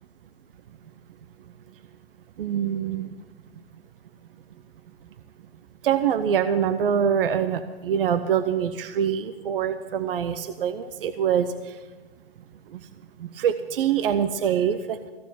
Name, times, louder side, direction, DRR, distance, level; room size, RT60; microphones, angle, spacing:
voice 1, 2.4-3.1 5.8-11.5 13.4-15.0, right 8 dB, 60° right, 11 dB, 0.8 m, -24 dB
15.5 x 7.0 x 9.1 m, 1.3 s
hypercardioid pair, 155°, 31 cm